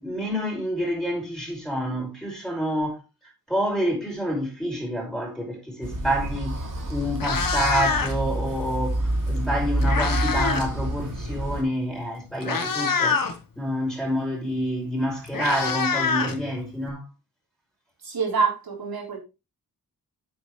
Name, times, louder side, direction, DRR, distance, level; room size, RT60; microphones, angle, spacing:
voice 1, 0.0-3.0 3.5-6.6 6.9-13.2 13.6-17.0, equal, ahead, 5.2 m, -28 dB
sound 1, 5.8-11.6, right 1 dB, 60° right, 4.3 m, -28 dB
Meow, 6.6-6.7 7.0-8.3 9.4-10.7 11.0-11.3 12.0-12.1 12.4-13.3 14.7-14.8 15.0-16.9, left 5 dB, 65° left, 1.5 m, -26 dB
voice 2, 18.0-19.2, right 5 dB, 75° right, 4.1 m, -26 dB
9.0 x 8.1 x 3.3 m
wide cardioid pair, 140°, 37 cm